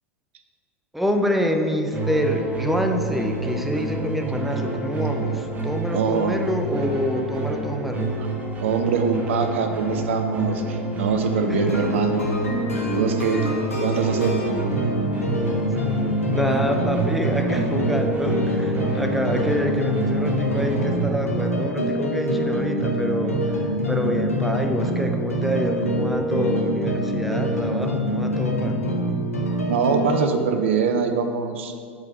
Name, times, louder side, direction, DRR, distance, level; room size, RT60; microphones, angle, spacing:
voice 1, 0.9-8.1 11.5-11.7 16.3-28.8, equal, ahead, 4 dB, 0.6 m, -26 dB
sound 1, 1.9-21.1, right 2 dB, 20° right, 1.0 m, -29 dB
voice 2, 5.9-6.4 8.6-12.3 12.9-13.5 13.8-14.5 29.7-31.7, right 5 dB, 65° right, 7 dB, 0.5 m, -23 dB
sound 2, 11.6-30.3, equal, 85° left, 0.9 m, -25 dB
7.2 x 3.9 x 5.3 m, 2.3 s
figure-of-eight pair, 80°, 7 cm